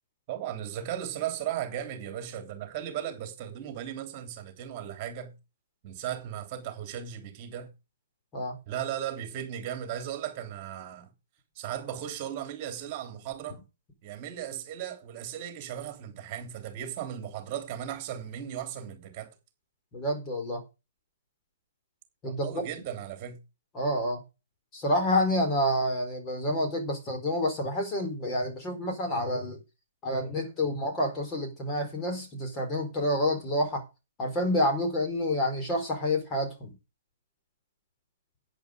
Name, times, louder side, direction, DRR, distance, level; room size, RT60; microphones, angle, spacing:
voice 1, 0.3-5.3 5.8-7.7 8.7-11.1 11.5-13.6 14.0-19.3 22.3-23.4, right 10 dB, 35° right, 3.3 m, -36 dB
voice 2, 19.9-20.6 22.2-22.5 23.7-24.2 24.7-29.6 30.0-33.9 34.2-36.7, left 1 dB, 20° left, 4.5 m, -28 dB
10.5 x 9.4 x 5.2 m
hypercardioid pair, 145°, 0 cm